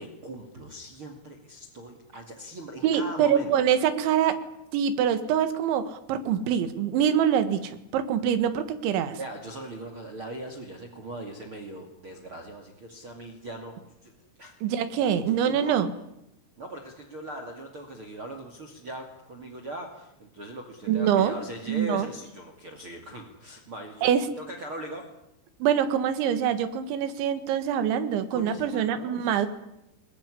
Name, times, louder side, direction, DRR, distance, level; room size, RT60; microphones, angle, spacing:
voice 1, 0.0-3.6 9.2-14.1 14.4-14.6 15.0-15.7 16.6-24.1 24.4-25.1 28.1-29.5, right 1 dB, 35° right, 4 dB, 2.3 m, -40 dB
voice 2, 2.8-4.4 4.7-9.2 14.6-15.9 20.9-21.4 21.7-22.1 24.0-24.3 25.6-29.5, right 9 dB, 75° right, 11 dB, 3.9 m, -24 dB
21.5 x 21.0 x 10.0 m, 0.83 s
omnidirectional pair, 5.5 m